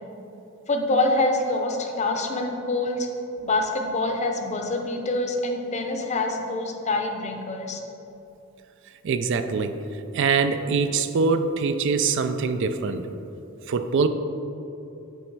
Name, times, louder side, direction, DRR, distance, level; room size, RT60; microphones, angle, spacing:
voice 1, 0.7-3.1 3.4-7.8, left 2 dB, 35° left, 3 dB, 0.6 m, -25 dB
voice 2, 9.0-9.8 10.1-13.1 13.7-14.1, right 5 dB, 60° right, 9 dB, 0.3 m, -23 dB
8.4 x 3.3 x 4.5 m, 2.9 s
head